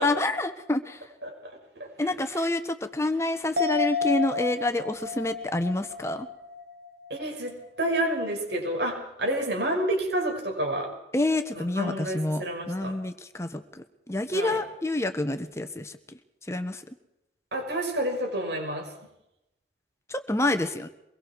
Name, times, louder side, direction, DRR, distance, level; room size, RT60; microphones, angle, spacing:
voice 1, 0.0-1.0 2.0-6.3 11.1-15.9 16.5-16.8 20.1-20.9, left 2 dB, 15° left, 9 dB, 1.2 m, -28 dB
voice 2, 1.2-2.5 7.1-10.9 11.5-12.9 14.3-14.6 17.5-18.9, right 1 dB, 75° right, 2 dB, 6.2 m, -30 dB
sound 1, 3.6-7.3 7.6-7.7, left 5 dB, 55° right, 1.3 m, -31 dB
24.0 x 22.5 x 4.7 m, 0.87 s
head